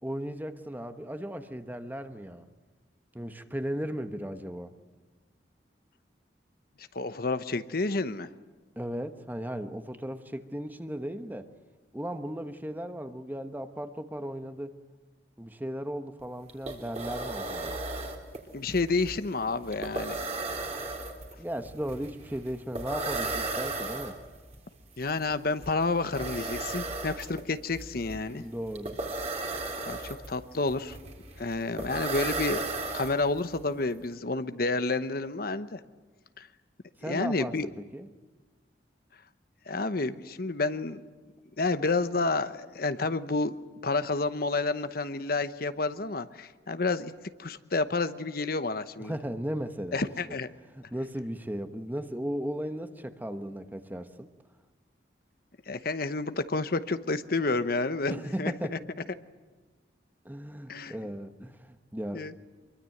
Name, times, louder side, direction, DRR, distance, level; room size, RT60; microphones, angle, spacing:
voice 1, 0.0-2.5 3.1-4.7 8.8-11.5 11.9-14.7 15.4-17.8 21.4-24.2 28.3-29.0 37.0-38.1 49.0-50.4 50.7-54.3 58.1-58.8 60.2-62.3, equal, 10° right, 8 dB, 1.2 m, -36 dB
voice 2, 6.9-8.3 18.5-20.2 25.0-28.4 29.8-31.0 31.4-35.8 36.4-36.5 37.0-37.7 39.7-41.1 41.6-43.5 43.8-47.1 47.4-49.2 49.9-50.5 55.7-58.8 60.7-60.9 62.1-62.3, left 3 dB, 55° left, 11 dB, 1.0 m, -30 dB
sound 1, 16.2-16.3 16.5-33.6, right 3 dB, 40° right, 3.3 m, -35 dB
25.0 x 23.0 x 7.9 m, 1.3 s
head